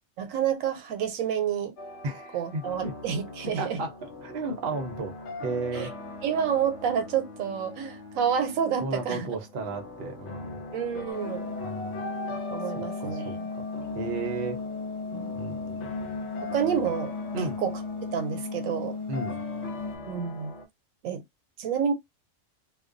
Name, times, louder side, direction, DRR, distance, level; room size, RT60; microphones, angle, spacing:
voice 1, 0.2-1.7 2.3-3.8 5.7-5.9 6.2-9.3 10.7-11.5 12.5-13.5 15.1-15.3 16.4-17.7 18.1-19.0 20.1-20.5 21.0-21.2 21.6-21.9, right 8 dB, 85° right, 1.0 m, -29 dB
sound 1, 1.8-20.7, left 2 dB, 65° left, 0.9 m, -42 dB
voice 2, 2.0-2.9 3.6-3.9 4.2-5.9 8.8-10.6 11.6-12.0 12.8-13.6 14.0-14.6 15.3-16.1 17.3-17.6 19.1-19.4, right 3 dB, 55° right, 0.7 m, -34 dB
Bowed string instrument, 5.8-10.1, left 4 dB, 15° right, 0.5 m, -48 dB
sound 2, 11.1-20.0, left 4 dB, 30° left, 0.7 m, -35 dB
2.3 x 2.2 x 2.5 m
omnidirectional pair, 1.4 m